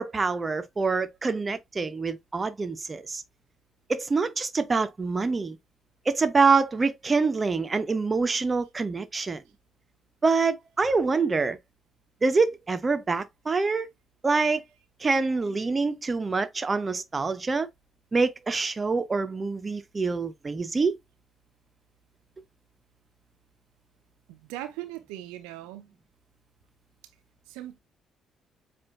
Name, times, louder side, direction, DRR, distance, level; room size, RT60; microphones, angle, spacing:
voice 1, 0.0-3.2 3.9-5.6 6.1-9.4 10.2-11.6 12.2-13.9 14.2-14.6 15.0-17.7 18.1-20.9, right 4 dB, 30° right, 0.8 m, -25 dB
voice 2, 24.3-25.9 27.5-27.8, right 14 dB, 75° right, 0.6 m, -39 dB
7.5 x 2.6 x 2.4 m
hypercardioid pair, 45°, 0 cm